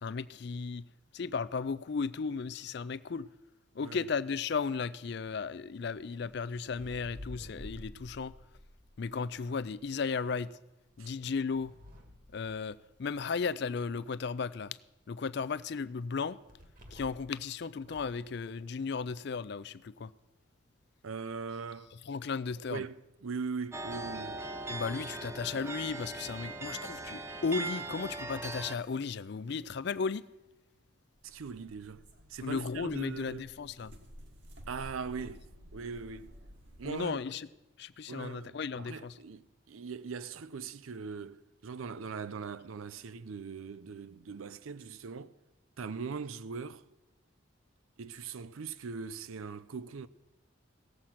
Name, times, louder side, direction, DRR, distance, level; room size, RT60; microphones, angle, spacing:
voice 1, 0.0-0.9 1.1-3.3 3.7-8.3 9.0-10.6 11.0-11.7 12.3-14.8 15.1-16.4 16.9-20.1 22.1-22.9 24.7-30.2 32.4-33.9 36.8-37.5 37.8-39.2, left 5 dB, 55° left, 0.4 m, -35 dB
sound 1, 5.8-9.9 10.9-13.2 16.5-17.4 17.8-18.3, left 1 dB, 40° right, 1.4 m, -51 dB
voice 2, 21.0-21.9 22.7-24.5 31.2-32.0 32.3-33.5 34.7-35.5 35.7-36.3 36.8-37.2 38.1-45.3 45.8-46.8 48.0-50.1, right 5 dB, 80° right, 0.5 m, -40 dB
sound 2, 23.7-28.8, right 2 dB, 15° right, 0.6 m, -39 dB
sound 3, 31.1-37.1, equal, 60° right, 1.5 m, -53 dB
17.0 x 7.6 x 5.7 m
head